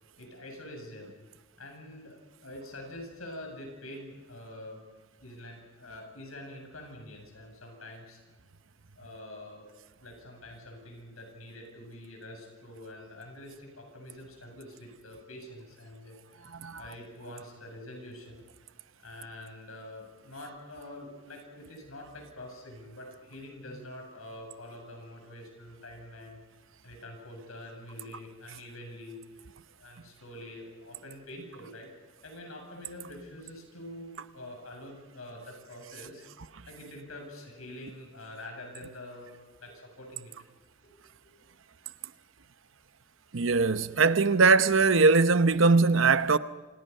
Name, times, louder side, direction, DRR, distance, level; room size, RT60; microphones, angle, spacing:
voice 1, 0.2-1.1 1.6-4.8 5.2-8.2 9.0-9.7 10.0-16.5 16.8-18.4 19.0-26.4 26.8-29.4 29.8-31.9 32.2-36.3 36.7-39.3 39.6-40.3 40.8-41.0 41.2-41.4, left 1 dB, 85° left, 7.7 m, -45 dB
voice 2, 43.3-46.4, right 4 dB, 65° right, 0.9 m, -21 dB
28.0 x 27.5 x 5.6 m
head